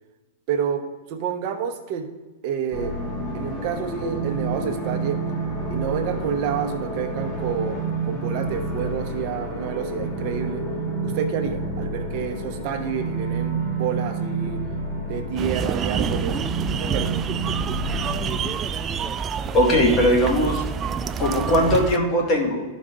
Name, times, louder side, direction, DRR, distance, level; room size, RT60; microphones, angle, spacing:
voice 1, 0.5-0.8 1.1-2.1 2.4-2.9 3.3-5.2 5.7-10.6 11.0-14.6 15.0-16.4 16.7-17.2, right 7 dB, 50° right, 6 dB, 1.1 m, -29 dB
sound 1, 2.7-18.5, right 3 dB, 10° left, 2.0 m, -29 dB
sound 2, 15.4-22.0, right 6 dB, 25° right, 0.4 m, -27 dB
voice 2, 19.5-20.6 21.2-22.6, equal, 35° left, 0 dB, 2.0 m, -19 dB
13.0 x 5.3 x 3.8 m, 1.2 s
hypercardioid pair, 135°, 0 cm